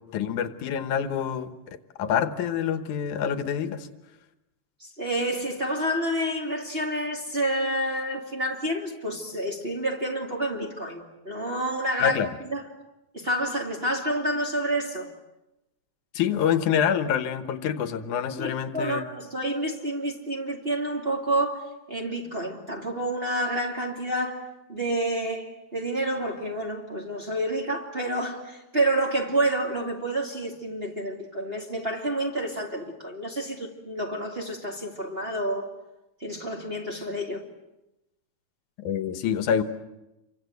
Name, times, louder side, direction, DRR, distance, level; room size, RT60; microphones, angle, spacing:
voice 1, 0.1-1.5 2.0-3.9 12.0-12.3 16.1-19.0 38.8-39.6, left 8 dB, 75° left, 2.7 m, -26 dB
voice 2, 4.8-12.2 12.5-12.6 13.1-15.1 18.4-35.7 36.2-37.4, right 1 dB, 20° right, 2.4 m, -29 dB
29.0 x 24.5 x 8.0 m
omnidirectional pair, 3.6 m